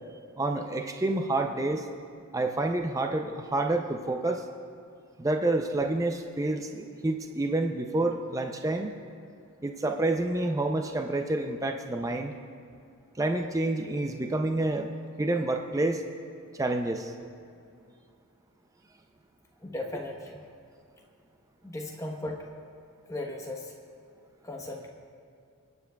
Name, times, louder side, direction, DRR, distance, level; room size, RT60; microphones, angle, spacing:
voice 1, 0.4-1.9 2.3-4.5 5.2-9.0 9.6-12.3 13.2-14.9 15.2-16.0 16.6-17.1, right 2 dB, 15° right, 4 dB, 0.4 m, -28 dB
voice 2, 19.6-20.4 21.6-22.5 23.1-23.7 24.4-24.9, left 1 dB, 15° left, 0 dB, 1.0 m, -36 dB
28.0 x 9.5 x 2.3 m, 2.5 s
head